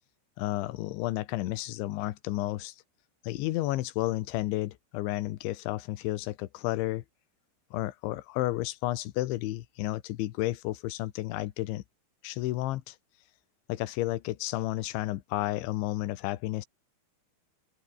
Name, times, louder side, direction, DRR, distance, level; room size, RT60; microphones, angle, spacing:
voice 1, 0.4-2.8 3.3-7.0 7.7-11.8 12.2-13.0 13.7-16.7, left 16 dB, 80° left, 3.4 m, -32 dB
omnidirectional pair, 5.4 m